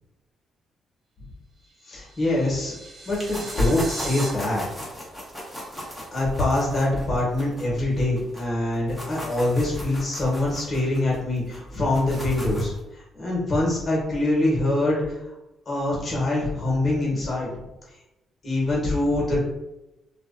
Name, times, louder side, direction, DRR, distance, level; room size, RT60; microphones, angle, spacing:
sound 1, 1.6-4.3, right 3 dB, 45° right, 0.5 m, -38 dB
voice 1, 1.9-2.8 3.1-4.6 6.1-15.0 15.7-17.6 18.4-19.4, left 1 dB, 30° left, -4 dB, 1.0 m, -24 dB
sound 2, 3.1-8.4 8.7-12.8, equal, 10° right, 0.8 m, -38 dB
2.4 x 2.1 x 2.4 m, 0.95 s
cardioid pair, 90°, 0 cm